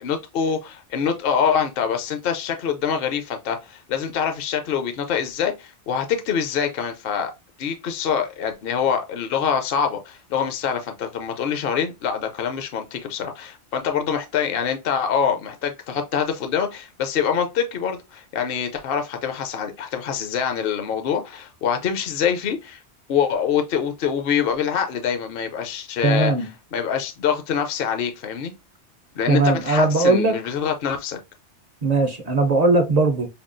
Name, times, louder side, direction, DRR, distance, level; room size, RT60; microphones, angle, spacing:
voice 1, 0.0-7.3 7.6-22.8 23.1-28.5 29.2-31.2, left 7 dB, 60° left, 0.7 m, -25 dB
voice 2, 26.0-26.5 29.3-30.4 31.8-33.3, right 3 dB, 50° right, 0.5 m, -19 dB
5.3 x 2.3 x 2.5 m
omnidirectional pair, 1.2 m